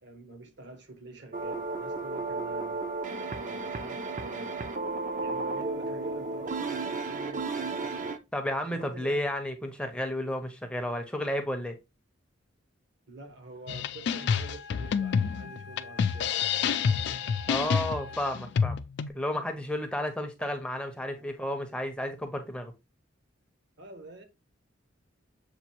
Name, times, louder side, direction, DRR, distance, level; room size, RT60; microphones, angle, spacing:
voice 1, 0.0-2.9 3.3-4.6 5.2-8.2 8.6-9.4 13.1-16.4 20.4-20.6 21.1-21.3 23.8-24.2, right 3 dB, 60° right, 1.0 m, -47 dB
sound 1, 1.3-8.2, right 3 dB, 40° right, 0.5 m, -33 dB
voice 2, 8.3-11.8 17.5-18.8 19.1-22.7, left 1 dB, 5° left, 0.5 m, -32 dB
sound 2, 13.7-19.1, left 6 dB, 60° left, 0.3 m, -28 dB
Wind instrument woodwind instrument, 14.1-18.7, left 4 dB, 80° right, 1.2 m, -46 dB
6.9 x 2.5 x 2.8 m
head